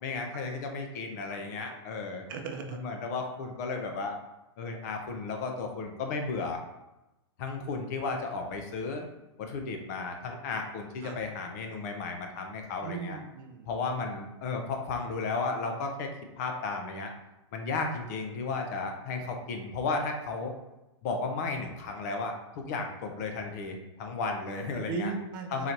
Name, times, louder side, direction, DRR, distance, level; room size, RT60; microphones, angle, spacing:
voice 1, 0.0-2.2 2.7-4.2 4.6-6.6 7.4-9.1 9.4-13.2 13.7-16.1 16.4-17.1 17.5-20.5 21.0-25.1 25.5-25.7, left 4 dB, 35° left, 3 dB, 0.6 m, -34 dB
voice 2, 1.3-1.8 2.3-2.8 11.0-11.2 12.8-13.7 24.9-25.7, right 5 dB, 45° right, 4 dB, 0.6 m, -37 dB
3.9 x 2.7 x 4.5 m, 0.97 s
hypercardioid pair, 160°, 15 cm